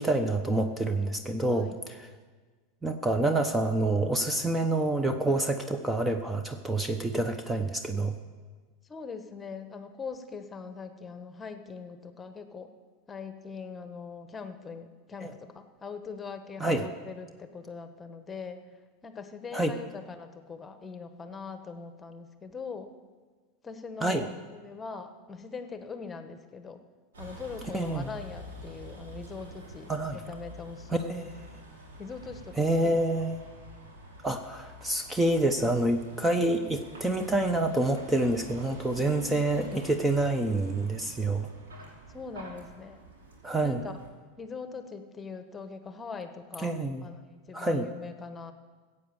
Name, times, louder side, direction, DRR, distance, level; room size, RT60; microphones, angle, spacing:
voice 1, 0.0-2.1 2.8-8.2 15.2-15.3 16.6-16.8 19.5-19.7 24.0-24.2 27.7-28.1 29.9-30.2 30.9-31.2 32.6-33.4 34.2-41.5 43.4-43.8 46.6-47.1 47.5-47.9, right 2 dB, 10° right, 7 dB, 0.9 m, -27 dB
voice 2, 8.9-12.7 13.1-18.6 19.0-22.9 23.6-26.8 27.2-29.9 30.3-31.3 32.0-33.0 39.1-39.3 42.1-43.0 43.6-44.0 44.4-48.5, left 5 dB, 20° left, 9 dB, 1.3 m, -42 dB
Vehicle, 27.1-44.1, right 1 dB, 85° right, 3.0 m, -47 dB
15.5 x 8.2 x 7.1 m, 1.4 s
hypercardioid pair, 90°, 0 cm